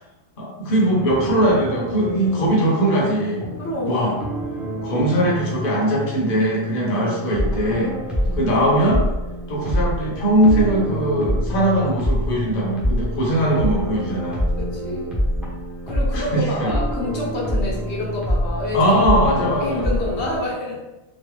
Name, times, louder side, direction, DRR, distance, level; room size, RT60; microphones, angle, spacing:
voice 1, 0.4-3.4 3.8-4.1 4.8-7.9 8.3-9.0 9.5-14.5 16.1-16.7 18.7-19.9, right 1 dB, 60° left, -3 dB, 0.9 m, -20 dB
sound 1, 0.7-20.4, equal, ahead, 0.5 m, -26 dB
voice 2, 3.6-4.1 6.9-7.2 8.2-8.5 14.6-15.2 15.9-18.8 19.4-20.8, left 1 dB, 80° left, -4 dB, 1.0 m, -28 dB
3.1 x 2.1 x 3.0 m, 1.0 s
omnidirectional pair, 1.1 m